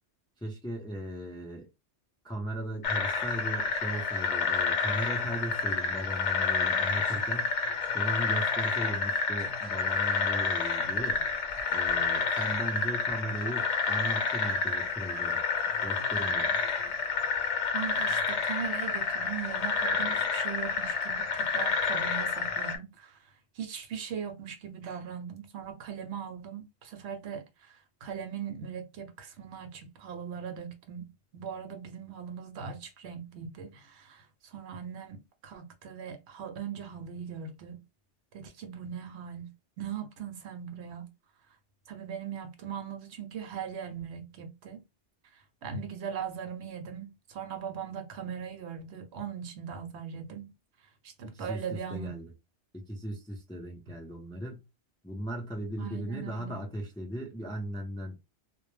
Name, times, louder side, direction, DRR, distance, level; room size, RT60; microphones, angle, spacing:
voice 1, 0.4-1.7 2.2-7.5 7.9-11.2 11.7-15.4 15.8-16.5 51.2-52.3 52.7-54.6 55.0-58.2, right 1 dB, 5° left, 0.4 m, -37 dB
sound 1, 2.8-22.8, left 4 dB, 75° left, 0.9 m, -29 dB
voice 2, 17.7-23.2 23.6-37.8 38.3-39.5 39.8-41.1 41.9-44.8 45.6-50.5 51.0-52.1 55.8-56.6, right 7 dB, 70° right, 0.8 m, -40 dB
2.1 x 2.1 x 3.1 m
omnidirectional pair, 1.2 m